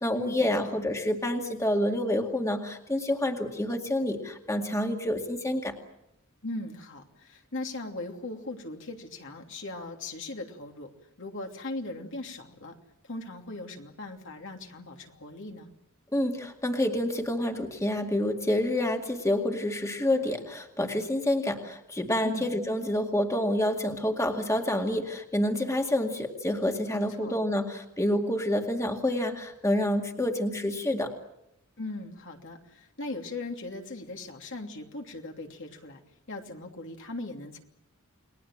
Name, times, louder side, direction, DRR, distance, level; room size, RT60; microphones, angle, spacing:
voice 1, 0.0-5.7 16.1-31.1, left 1 dB, 15° left, 3 dB, 2.2 m, -28 dB
voice 2, 6.4-10.9 11.2-12.8 13.0-15.7 22.2-22.5 26.9-27.3 31.8-36.0 36.3-37.6, left 2 dB, 60° left, 2 dB, 3.0 m, -39 dB
30.0 x 21.0 x 7.5 m, 0.80 s
head